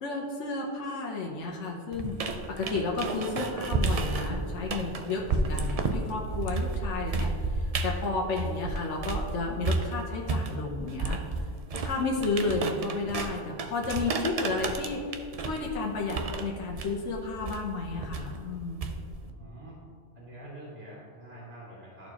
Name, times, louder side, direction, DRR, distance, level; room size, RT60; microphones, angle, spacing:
voice 1, 0.0-11.2 11.8-15.0 15.4-18.9, left 3 dB, 75° left, -1 dB, 1.1 m, -32 dB
sound 1, 1.9-9.3 9.6-19.3, right 3 dB, 55° right, 0.4 m, -32 dB
voice 2, 19.2-19.8 20.1-22.1, right 1 dB, 25° right, -13 dB, 2.0 m, -46 dB
13.0 x 4.4 x 2.9 m, 2.3 s
omnidirectional pair, 1.2 m